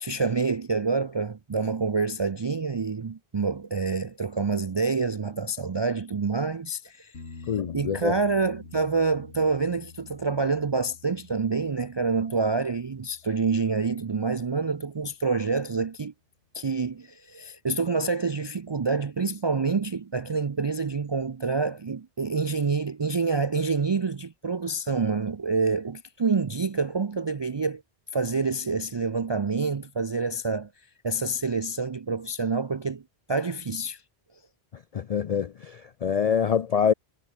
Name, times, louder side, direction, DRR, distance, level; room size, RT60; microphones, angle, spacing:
voice 1, 0.0-7.1 7.7-16.1 16.5-27.8 28.1-30.7 31.0-33.0 33.3-34.0, right 4 dB, 40° right, 0.4 m, -27 dB
sound 1, 7.1-14.8 17.8-17.9, left 3 dB, 75° left, 2.6 m, -48 dB
voice 2, 7.5-8.1 34.9-36.9, left 7 dB, 50° left, 0.4 m, -25 dB
omnidirectional pair, 1.1 m